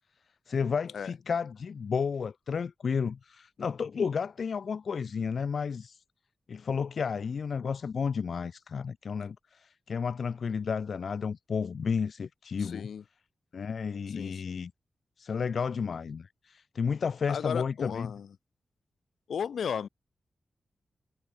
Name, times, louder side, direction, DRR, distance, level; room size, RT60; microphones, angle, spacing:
voice 1, 0.5-6.0 6.5-12.9 13.5-14.7 15.2-18.1, left 6 dB, 60° left, 1.7 m, -32 dB
voice 2, 12.6-13.0 14.1-14.6 17.3-18.3 19.3-19.9, left 7 dB, 85° left, 3.2 m, -35 dB
wide cardioid pair, 140°, 0 cm